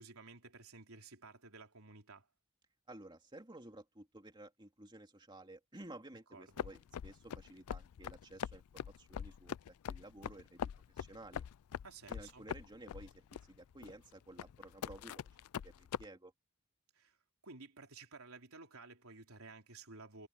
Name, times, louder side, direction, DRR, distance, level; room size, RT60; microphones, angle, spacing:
voice 1, 0.0-2.3 6.3-6.7 11.8-12.5 16.9-17.2 17.4-20.3, right 3 dB, 75° right, 3.6 m, -54 dB
voice 2, 2.9-9.6 9.9-10.6 10.9-11.4 12.1-15.3 15.6-16.3, right 1 dB, 20° right, 2.7 m, -54 dB
sound 1, 6.6-16.1, left 8 dB, 80° left, 0.4 m, -43 dB
head